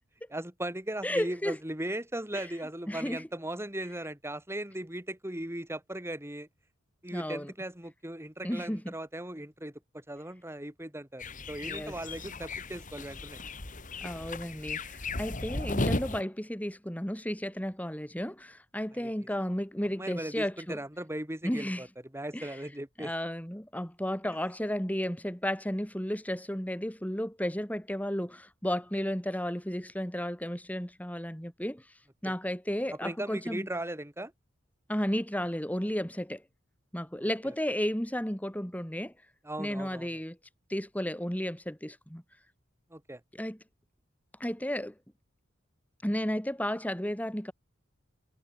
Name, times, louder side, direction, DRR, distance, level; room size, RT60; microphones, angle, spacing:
voice 1, 0.3-6.5 7.0-13.4 18.9-19.1 20.0-21.9 22.1-23.1 32.2-32.3 32.9-34.3 37.2-37.5 39.4-40.1 42.9-43.2, right 1 dB, 15° right, 4.5 m, -38 dB
voice 2, 1.0-1.6 2.3-2.5 2.9-3.3 7.1-7.5 8.4-8.9 11.6-11.9 14.0-20.8 21.4-21.8 22.3-22.6 23.0-31.9 32.2-33.7 34.9-36.4 36.9-39.1 39.6-40.4 40.7-42.2 43.4-43.6 44.4-44.9 46.0-47.5, equal, 10° left, 3.8 m, -33 dB
sound 1, 11.2-16.2, left 2 dB, 40° left, 2.3 m, -35 dB
head